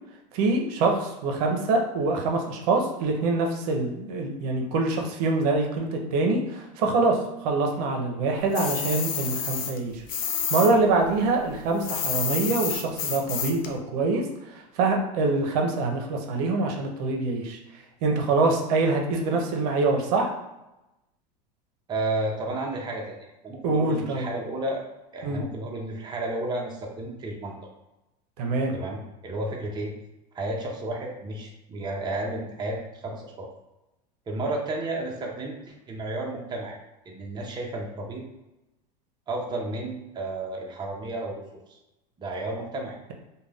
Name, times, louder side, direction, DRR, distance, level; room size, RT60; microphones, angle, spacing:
voice 1, 0.3-10.0 10.5-14.2 14.5-17.6 18.0-20.3 23.6-24.3 25.2-25.4 28.4-28.7, right 3 dB, 65° right, 1 dB, 0.6 m, -25 dB
sound 1, 8.5-10.7 11.0-13.7, left 7 dB, 45° left, 0.5 m, -29 dB
voice 2, 21.9-23.1 23.4-24.8 25.1-27.5 28.7-29.9 30.3-33.5 34.3-36.8 37.1-38.2 39.3-41.4 41.7-41.8 42.2-43.0, right 2 dB, 20° right, -1 dB, 0.6 m, -32 dB
2.5 x 2.2 x 3.3 m, 0.95 s
supercardioid pair, 115°, 21 cm